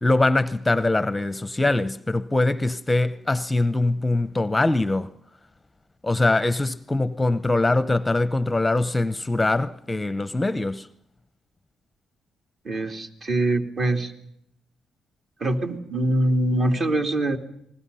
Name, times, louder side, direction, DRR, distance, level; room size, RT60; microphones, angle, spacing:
voice 1, 0.0-5.1 6.0-10.9, left 2 dB, 15° left, 0.8 m, -22 dB
voice 2, 12.6-14.1 15.4-17.4, right 1 dB, 45° right, 3.1 m, -23 dB
29.0 x 20.5 x 5.6 m
cardioid pair, 90°, 0 cm